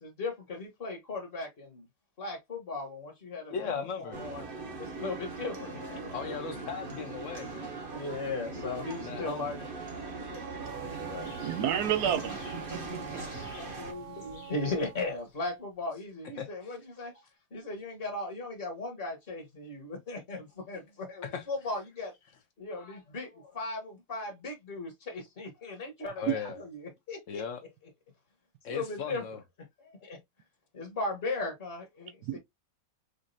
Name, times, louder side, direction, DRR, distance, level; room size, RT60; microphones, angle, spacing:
voice 1, 0.0-1.8 2.2-4.4 4.8-6.3 7.9-9.7 11.1-11.3 12.9-17.2 17.5-22.1 22.6-27.4 28.7-29.2 29.6-30.2 30.7-32.4, left 3 dB, 35° left, 1.1 m, -37 dB
voice 2, 3.5-4.2 6.1-7.8 9.0-9.5 16.4-16.5 21.2-21.4 26.2-26.6 27.3-27.6 28.6-29.4, left 6 dB, 60° left, 0.8 m, -37 dB
sound 1, 4.1-13.9, right 3 dB, 40° right, 0.8 m, -40 dB
Wind instrument woodwind instrument, 10.4-15.0, right 13 dB, 85° right, 1.3 m, -46 dB
sound 2, 10.6-15.6, left 4 dB, 75° left, 1.6 m, -51 dB
voice 3, 11.2-12.4 12.7-13.0 32.3-32.4, right 10 dB, 70° right, 1.0 m, -30 dB
5.1 x 2.4 x 2.6 m
omnidirectional pair, 2.0 m